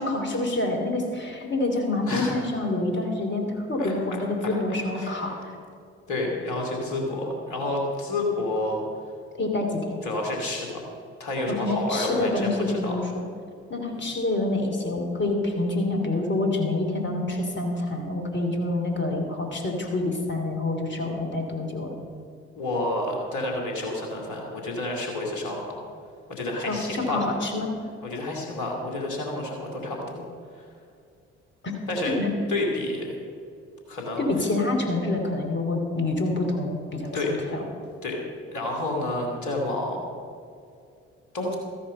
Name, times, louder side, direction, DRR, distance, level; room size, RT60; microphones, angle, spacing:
voice 1, 0.0-5.4 9.4-10.0 11.5-13.2 13.7-21.9 26.7-27.7 32.0-32.3 34.2-37.1 37.5-37.6, left 2 dB, 35° left, 2 dB, 2.8 m, -27 dB
voice 2, 4.9-5.4 6.1-8.8 10.0-10.8 11.2-13.0 13.9-14.0 22.5-25.8 26.3-27.2 28.0-30.3 30.5-30.7 31.9-32.1 32.5-33.2 33.9-34.3 37.1-37.3 38.0-38.2 38.5-40.0 41.3-41.6, left 2 dB, 60° left, 0 dB, 2.8 m, -29 dB
13.5 x 10.0 x 5.4 m, 2.4 s
figure-of-eight pair, 45°, 33 cm